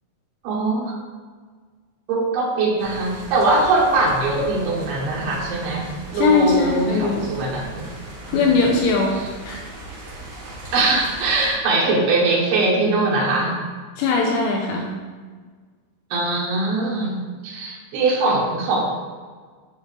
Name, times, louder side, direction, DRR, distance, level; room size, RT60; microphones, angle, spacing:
voice 1, 0.4-0.9 2.1-5.9 6.1-7.9 8.3-8.4 10.7-13.6 16.1-18.8, right 3 dB, 90° right, -4 dB, 2.1 m, -21 dB
sound 1, 2.8-11.5, right 1 dB, 55° right, 1.8 m, -38 dB
voice 2, 6.1-7.3 8.3-9.2 9.4-9.6 14.0-14.9, left 4 dB, 80° left, -1 dB, 3.1 m, -20 dB
10.5 x 4.5 x 3.3 m, 1.5 s
omnidirectional pair, 6.0 m